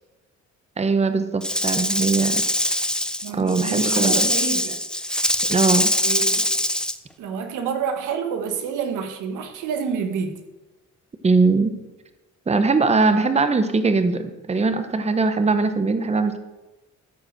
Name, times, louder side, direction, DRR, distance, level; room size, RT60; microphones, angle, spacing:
voice 1, 0.8-2.8 3.3-4.3 5.5-5.9 11.2-11.7 12.5-16.4, right 4 dB, 20° right, 9 dB, 0.9 m, -21 dB
Rattle / Rattle (instrument), 1.4-7.0, left 1 dB, 5° left, 0.6 m, -23 dB
voice 2, 3.2-4.8 6.0-6.4 7.2-10.4, right 6 dB, 85° right, 6 dB, 1.3 m, -28 dB
13.5 x 4.7 x 6.5 m, 1.1 s
cardioid pair, 90°, 30 cm